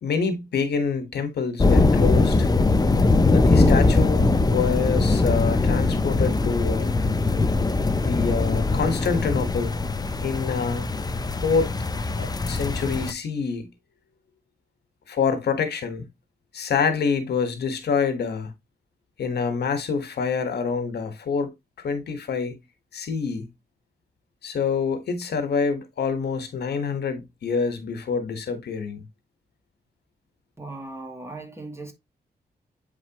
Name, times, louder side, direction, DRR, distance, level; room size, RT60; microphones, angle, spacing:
voice 1, 0.0-2.5 3.3-6.9 8.0-9.8 10.2-10.9 11.4-11.7 12.2-13.7 15.1-16.0 16.5-18.5 19.2-21.5 21.8-22.6 22.9-23.5 24.4-29.0, left 5 dB, 80° left, 1.6 m, -26 dB
sound 1, 1.6-13.1, left 3 dB, 25° left, 0.7 m, -21 dB
voice 2, 30.6-31.9, right 2 dB, 15° right, 2.3 m, -38 dB
8.5 x 4.8 x 3.0 m
wide cardioid pair, 105°, 17 cm